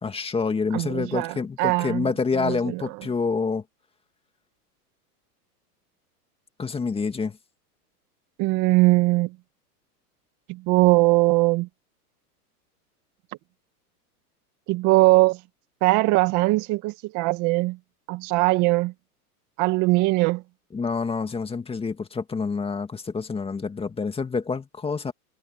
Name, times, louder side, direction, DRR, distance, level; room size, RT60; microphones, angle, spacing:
voice 1, 0.0-3.6 6.6-7.4 20.7-25.1, left 4 dB, 10° left, 2.2 m, -27 dB
voice 2, 0.7-2.1 2.4-2.9 8.4-9.4 10.5-11.7 14.7-15.4 15.8-17.8 18.1-18.9 19.6-20.4, right 22 dB, 40° right, 1.8 m, -21 dB
hypercardioid pair, 130°, 46 cm